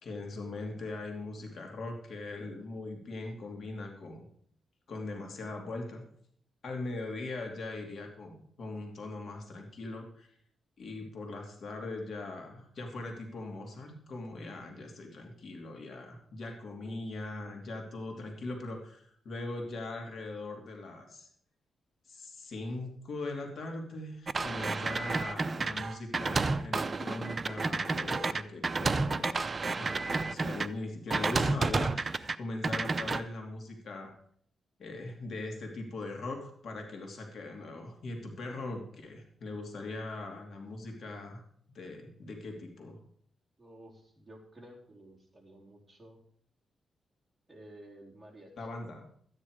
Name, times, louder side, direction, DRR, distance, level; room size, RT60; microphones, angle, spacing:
voice 1, 0.0-4.3 4.9-6.0 6.6-10.3 10.8-21.3 22.1-29.5 29.8-34.1 34.8-41.4 41.7-43.0 48.6-49.1, left 2 dB, 60° left, 2 dB, 2.7 m, -40 dB
voice 2, 16.7-17.0 43.6-46.2 47.5-48.8, right 1 dB, 10° right, -3 dB, 3.9 m, -53 dB
sound 1, 24.3-30.7 31.1-32.4 32.6-33.2, right 3 dB, 35° right, 0.6 m, -31 dB
13.0 x 9.8 x 4.9 m, 0.62 s
cardioid pair, 95°, 0 cm